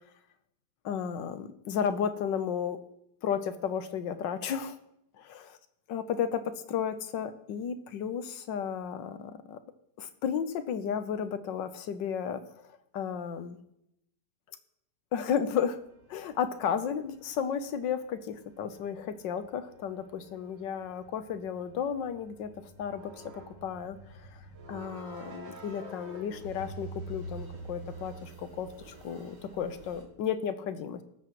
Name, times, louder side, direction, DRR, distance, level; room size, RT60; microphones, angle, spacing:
voice 1, 0.8-2.8 3.2-4.8 5.2-5.6 5.9-6.4 6.7-9.6 10.0-12.6 12.9-13.6 15.1-15.8 16.1-22.5 22.8-24.4 24.7-31.0, left 7 dB, 90° left, 10 dB, 1.6 m, -33 dB
sound 1, 15.8-30.0, right 2 dB, 70° right, 2.9 m, -47 dB
19.5 x 8.0 x 3.1 m, 0.77 s
omnidirectional pair, 1.9 m